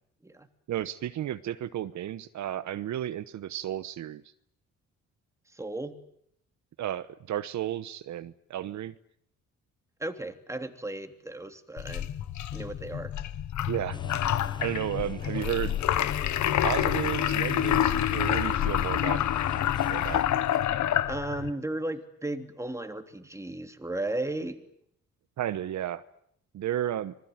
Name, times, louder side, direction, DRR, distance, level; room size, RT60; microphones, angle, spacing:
voice 1, 0.7-4.2 6.8-8.9 13.7-14.0 14.6-16.1 16.6-19.2 19.9-20.3 25.4-26.0 26.5-27.2, right 12 dB, 70° right, 13 dB, 1.1 m, -33 dB
voice 2, 5.5-6.0 10.0-12.1 12.5-13.1 21.1-24.6, right 2 dB, 10° right, 7 dB, 3.1 m, -35 dB
sound 1, 11.8-21.5, left 11 dB, 70° left, 1.3 m, -27 dB
sound 2, 13.9-20.4, left 3 dB, 15° left, 1.1 m, -45 dB
26.5 x 21.0 x 9.2 m, 0.70 s
cardioid pair, 90°, 30 cm